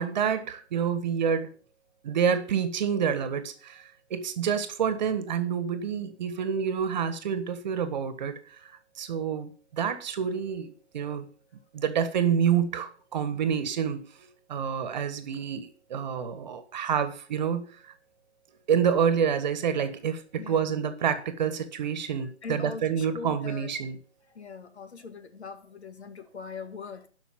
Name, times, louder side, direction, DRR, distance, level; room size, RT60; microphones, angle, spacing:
voice 1, 0.0-1.5 2.0-8.7 9.0-11.3 11.7-17.6 18.7-24.0, right 7 dB, 40° right, 1.5 m, -28 dB
voice 2, 20.4-20.8 22.2-23.7 24.3-27.1, left 5 dB, 65° left, 1.9 m, -41 dB
11.5 x 5.9 x 7.4 m
hypercardioid pair, 150°, 35 cm